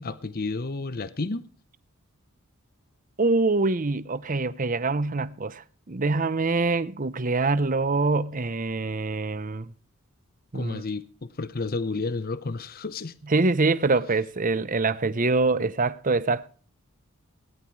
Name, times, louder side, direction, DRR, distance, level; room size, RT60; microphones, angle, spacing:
voice 1, 0.0-1.5 10.5-13.1, left 3 dB, 40° left, 0.8 m, -31 dB
voice 2, 3.2-9.7 10.5-10.8 13.3-16.5, right 3 dB, 35° right, 0.8 m, -25 dB
18.5 x 10.5 x 4.7 m
head